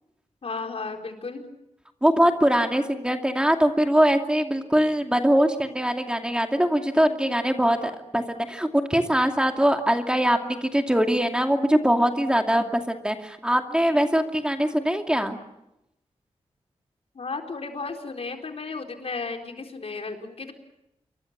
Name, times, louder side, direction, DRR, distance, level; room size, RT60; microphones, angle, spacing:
voice 1, 0.4-1.5 17.1-20.5, left 4 dB, 60° left, 3 dB, 4.2 m, -34 dB
voice 2, 2.0-15.4, equal, 10° right, 4 dB, 2.5 m, -22 dB
28.0 x 23.5 x 7.4 m, 0.87 s
wide cardioid pair, 80°, 12 cm